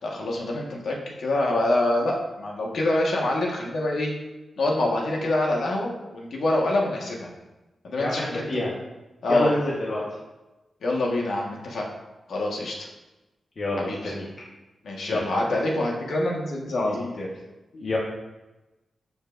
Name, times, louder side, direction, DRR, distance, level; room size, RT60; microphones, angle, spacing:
voice 1, 0.0-4.1 4.6-7.3 7.8-8.6 9.2-9.5 10.8-11.9 12.3-12.9 13.8-14.1 14.8-17.3, left 1 dB, 70° left, -1 dB, 1.5 m, -26 dB
voice 2, 8.0-8.7 9.3-10.0 13.6-14.3 15.1-15.2 16.8-17.0 17.7-18.0, left 1 dB, 45° left, -5 dB, 1.2 m, -27 dB
12.0 x 5.5 x 2.6 m, 1.1 s
wide cardioid pair, 155°, 0 cm